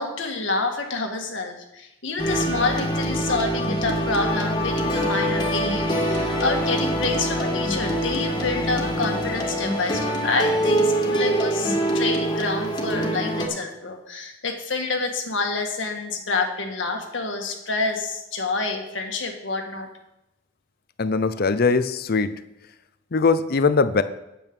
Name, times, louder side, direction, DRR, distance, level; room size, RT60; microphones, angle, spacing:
voice 1, 0.0-19.9, left 3 dB, 85° left, 3 dB, 1.8 m, -28 dB
sound 1, 2.2-13.5, right 1 dB, 25° left, 2.0 m, -24 dB
voice 2, 21.0-22.4 23.1-24.0, left 4 dB, 55° left, 13 dB, 0.6 m, -21 dB
9.1 x 8.6 x 6.1 m, 0.89 s
head